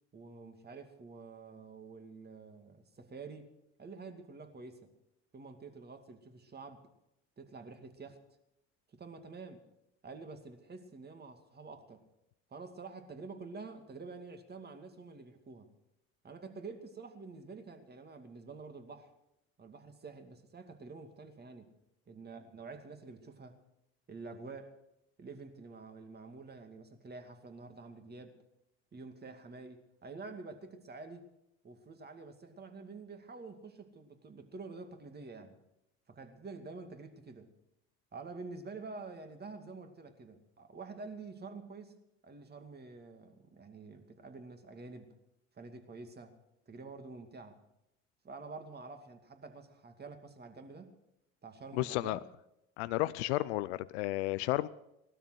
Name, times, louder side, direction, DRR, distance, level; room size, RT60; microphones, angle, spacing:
voice 1, 0.1-3.5 3.8-4.9 5.3-6.8 7.4-8.2 8.9-9.6 10.0-12.0 12.5-15.7 16.2-19.1 19.6-21.7 22.1-23.6 24.1-24.8 25.2-28.3 28.9-31.3 31.6-35.6 36.1-37.5 38.1-42.0 42.2-45.1 45.5-46.3 46.7-47.6 48.2-51.0 51.4-52.2, right 4 dB, 30° right, 6 dB, 2.4 m, -48 dB
voice 2, 51.7-52.2 52.8-54.7, left 18 dB, 80° left, 17 dB, 0.6 m, -32 dB
18.0 x 12.5 x 6.3 m, 0.85 s
hypercardioid pair, 70°, 33 cm